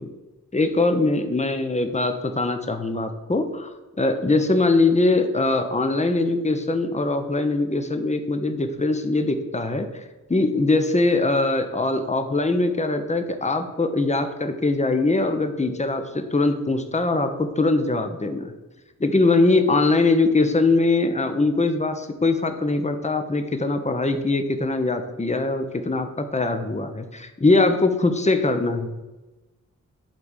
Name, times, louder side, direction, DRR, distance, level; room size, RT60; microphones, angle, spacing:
voice 1, 0.5-3.7 4.0-9.9 10.3-18.5 19.0-28.9, left 2 dB, 20° left, 7 dB, 1.1 m, -22 dB
10.5 x 3.7 x 6.4 m, 1.1 s
cardioid pair, 70°, 33 cm